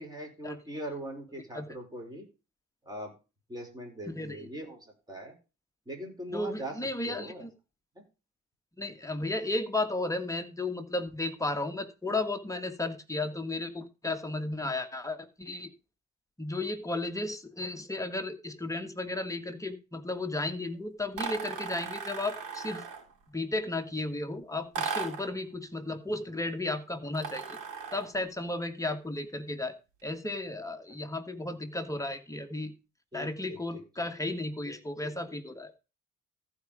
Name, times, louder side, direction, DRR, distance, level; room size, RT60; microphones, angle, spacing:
voice 1, 0.0-2.2 2.9-3.1 3.5-5.3 5.9-6.7 7.0-7.5 8.0-8.1 33.1-33.8, right 1 dB, 15° right, 1 dB, 4.7 m, -41 dB
voice 2, 4.1-4.5 6.3-7.5 8.8-15.7 16.4-22.8 23.3-27.6 27.9-29.7 30.0-32.7 33.1-35.7, left 2 dB, 10° left, 6 dB, 1.6 m, -34 dB
sound 1, 21.2-23.1 24.7-25.3 27.1-28.2, right 6 dB, 85° right, 3.3 m, -37 dB
14.5 x 4.9 x 5.0 m, 0.30 s
cardioid pair, 90°, 30 cm